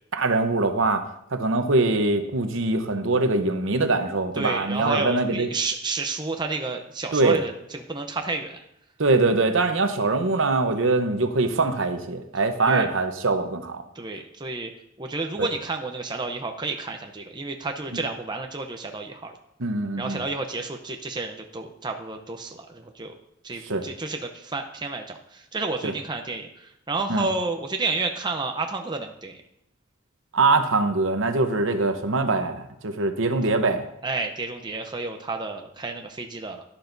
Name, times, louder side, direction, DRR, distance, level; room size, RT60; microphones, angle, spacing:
voice 1, 0.1-1.0 1.3-5.5 7.1-7.4 9.0-13.8 15.4-15.5 19.6-20.2 23.6-23.9 25.8-25.9 27.1-27.3 30.3-33.9, right 3 dB, 65° right, 7 dB, 0.9 m, -23 dB
voice 2, 4.4-8.6 12.7-12.9 13.9-14.7 15.0-19.3 20.0-23.1 23.4-29.4 34.0-36.6, right 3 dB, 20° right, 4 dB, 0.7 m, -30 dB
11.5 x 11.5 x 2.7 m, 0.77 s
head